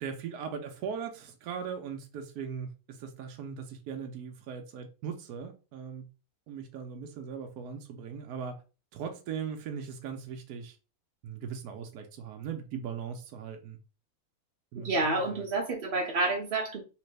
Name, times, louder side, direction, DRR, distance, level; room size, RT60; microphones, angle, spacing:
voice 1, 0.0-6.1 6.5-8.6 8.9-10.8 11.2-13.8 14.7-14.9 15.3-15.4, right 7 dB, 85° right, 1.1 m, -39 dB
voice 2, 14.8-16.8, right 2 dB, 50° right, 0.7 m, -29 dB
3.3 x 2.9 x 3.2 m
omnidirectional pair, 1.6 m